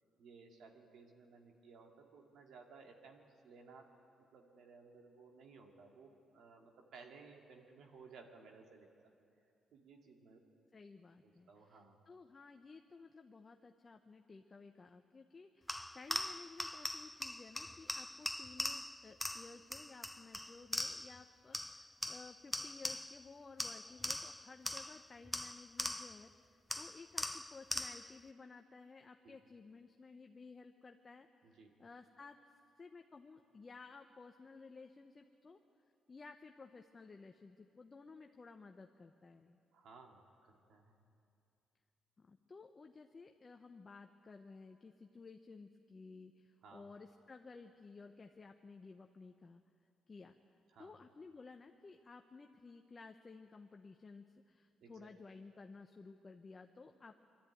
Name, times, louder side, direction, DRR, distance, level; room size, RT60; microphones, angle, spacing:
voice 1, 0.2-3.8 4.3-9.1 9.7-10.4 11.2-12.0 24.0-24.1 29.2-29.4 31.4-31.8 39.7-41.0 46.6-46.9 50.7-51.0 54.8-55.1, right 4 dB, 75° right, 2 dB, 2.2 m, -59 dB
voice 2, 10.7-32.4 32.8-35.6 36.1-39.6 42.2-49.6 50.1-50.4 50.8-57.2, left 4 dB, 30° left, 5 dB, 0.8 m, -56 dB
sound 1, 15.7-21.2 21.5-23.3 23.6-26.3 26.7-28.2, left 1 dB, 5° left, 0.4 m, -42 dB
22.5 x 13.0 x 9.3 m, 2.6 s
cardioid pair, 90°, 0 cm